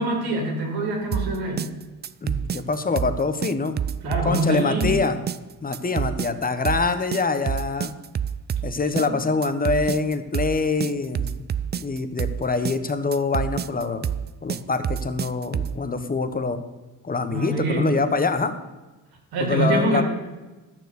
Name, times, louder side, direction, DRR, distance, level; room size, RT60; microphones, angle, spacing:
voice 1, 0.0-1.7 4.0-5.0 9.0-9.2 17.3-18.0 19.3-20.0, right 1 dB, 80° right, 2 dB, 2.9 m, -25 dB
sound 1, 1.1-15.8, right 8 dB, 30° right, 0.4 m, -28 dB
voice 2, 2.2-3.8 4.2-5.2 5.6-7.9 8.6-14.1 14.4-16.7 17.0-18.5 19.4-20.0, left 4 dB, 25° left, 9 dB, 1.1 m, -25 dB
12.0 x 6.9 x 6.6 m, 1.2 s
cardioid pair, 90°, 37 cm